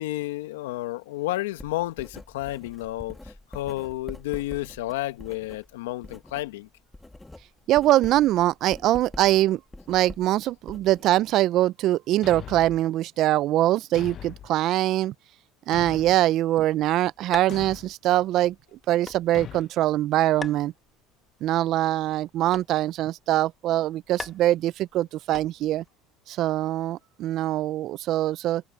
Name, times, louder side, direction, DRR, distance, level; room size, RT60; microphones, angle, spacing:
voice 1, 0.0-3.2 3.5-6.7, left 17 dB, 85° left, 1.6 m, -31 dB
Writing, 1.6-6.5 6.8-11.4, left 2 dB, 10° left, 1.8 m, -45 dB
voice 2, 7.7-9.6 9.9-15.1 15.7-18.5 18.9-20.7 21.4-25.8 26.3-28.6, right 14 dB, 60° right, 0.4 m, -23 dB
Thump thud, 12.2-12.8 13.9-14.5 15.7-16.3 17.5-17.9 19.3-19.7, left 10 dB, 45° left, 0.7 m, -40 dB
sound 1, 16.6-25.9, left 4 dB, 25° left, 1.9 m, -45 dB
supercardioid pair, 85°, 0 cm